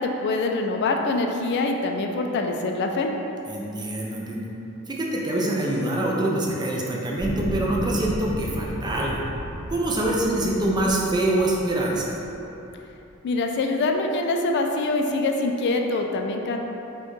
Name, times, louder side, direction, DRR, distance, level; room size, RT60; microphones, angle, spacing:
voice 1, 0.0-3.1 13.2-16.6, left 2 dB, 55° left, 3 dB, 0.3 m, -24 dB
voice 2, 3.5-4.5 4.9-9.2 9.7-12.2, right 1 dB, 20° right, -3 dB, 0.4 m, -25 dB
sound 1, 7.2-12.4 13.1-13.2, equal, 5° right, 0.9 m, -33 dB
4.3 x 2.3 x 3.0 m, 3.0 s
head